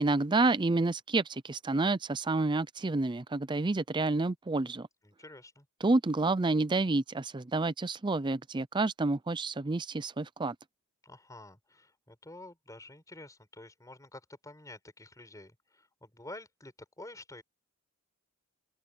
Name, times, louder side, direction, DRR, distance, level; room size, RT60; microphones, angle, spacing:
voice 1, 0.0-4.9 5.8-10.6, right 3 dB, 20° right, 0.5 m, -29 dB
voice 2, 5.0-5.7 11.0-17.4, left 2 dB, 15° left, 5.5 m, -49 dB
open air
head